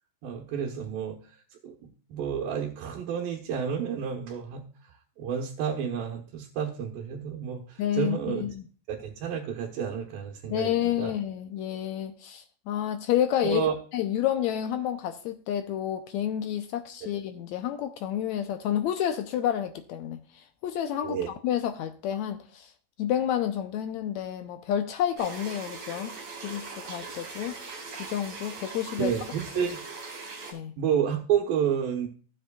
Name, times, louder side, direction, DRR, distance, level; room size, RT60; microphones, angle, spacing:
voice 1, 0.2-1.2 1.6-1.7 2.1-4.7 5.2-8.5 8.9-11.1 13.4-13.8 21.0-21.3 29.0-29.8 30.8-32.1, right 8 dB, 85° right, 2.9 m, -30 dB
voice 2, 7.8-8.6 10.5-13.6 13.9-22.7 23.0-26.1 26.4-27.5 28.0-29.1 30.5-30.7, left 10 dB, 80° left, 1.7 m, -30 dB
sound 1, 25.2-30.5, right 4 dB, 50° right, 3.6 m, -40 dB
15.0 x 7.5 x 2.3 m
omnidirectional pair, 4.0 m